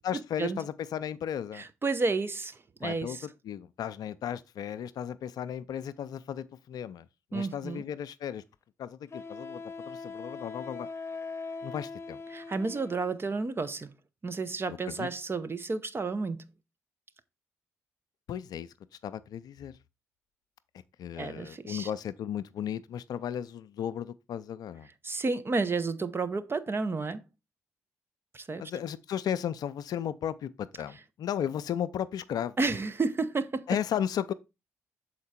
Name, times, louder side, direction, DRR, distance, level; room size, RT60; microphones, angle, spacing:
voice 1, 0.0-1.6 2.8-8.4 8.8-10.9 11.6-12.2 14.7-15.1 18.3-18.7 19.0-19.7 21.0-24.9 28.6-32.5 33.7-34.3, left 9 dB, 60° left, 0.4 m, -35 dB
voice 2, 1.5-3.3 7.3-7.8 12.3-13.9 14.2-16.4 21.2-21.9 25.0-27.2 28.3-28.6 32.6-33.7, right 3 dB, 30° right, 0.8 m, -31 dB
Wind instrument woodwind instrument, 7.8-7.9 9.1-13.2, left 4 dB, 35° left, 0.9 m, -41 dB
6.5 x 4.5 x 4.3 m
hypercardioid pair, 40°, 7 cm